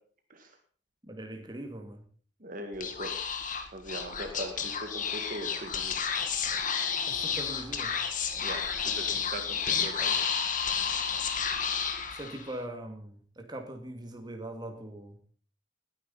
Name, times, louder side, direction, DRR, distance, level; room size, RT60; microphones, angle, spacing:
voice 1, 1.0-2.0 7.1-7.9 12.1-15.2, right 1 dB, 20° right, 4 dB, 2.3 m, -41 dB
voice 2, 2.4-3.1 3.7-6.0 8.4-10.2, right 1 dB, 45° right, 5 dB, 1.8 m, -40 dB
Speech / Whispering, 2.7-12.6, left 6 dB, 45° left, 2.0 m, -31 dB
sound 1, 3.9-12.3, right 1 dB, ahead, 4.0 m, -55 dB
20.0 x 9.7 x 4.1 m, 0.43 s
head